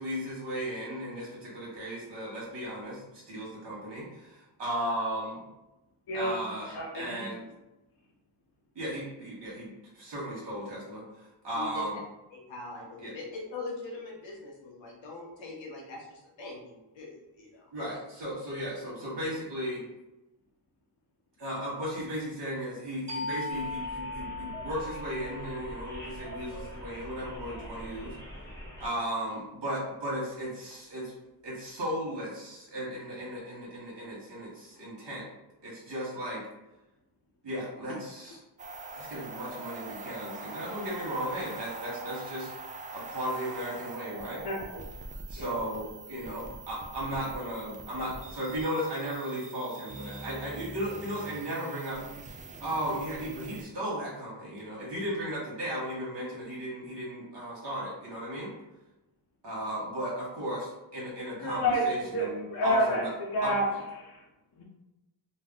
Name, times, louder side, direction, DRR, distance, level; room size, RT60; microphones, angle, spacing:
voice 1, 0.0-5.4 6.1-7.5 8.7-12.0 13.0-13.1 17.7-19.8 21.4-28.2 28.8-31.1 31.4-35.3 35.6-36.4 37.4-38.4 38.9-42.5 42.9-44.5 45.3-52.0 52.6-58.5 59.4-63.1 63.4-63.8, equal, 70° right, -6 dB, 1.1 m, -35 dB
voice 2, 6.7-7.3 44.4-44.6 45.4-45.6 61.4-63.6 64.0-64.2 64.6-64.7, equal, 60° left, -3 dB, 0.7 m, -29 dB
voice 3, 11.5-11.8 12.3-17.6, left 3 dB, 90° left, -1 dB, 0.9 m, -42 dB
sound 1, 23.1-28.4, left 3 dB, 40° right, 0.9 m, -40 dB
sound 2, 23.5-28.9, equal, 5° left, 0.9 m, -44 dB
sound 3, 38.6-53.6, right 3 dB, 20° right, 0.3 m, -43 dB
2.4 x 2.2 x 3.5 m, 0.98 s
cardioid pair, 75°, 44 cm